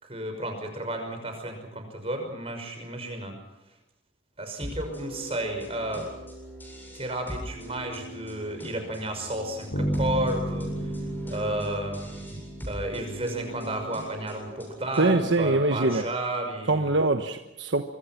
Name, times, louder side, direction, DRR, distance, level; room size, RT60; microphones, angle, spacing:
voice 1, 0.0-3.3 4.4-6.1 6.9-10.7 11.2-12.4 12.7-16.9, right 1 dB, 30° right, 5 dB, 5.8 m, -32 dB
sound 1, 4.6-15.3, right 1 dB, 10° left, 7.9 m, -41 dB
Bass guitar, 9.7-13.5, equal, 85° left, 5.5 m, -32 dB
voice 2, 15.0-16.1 16.7-17.8, right 2 dB, 75° right, 7 dB, 1.2 m, -23 dB
25.0 x 24.5 x 6.0 m, 0.97 s
head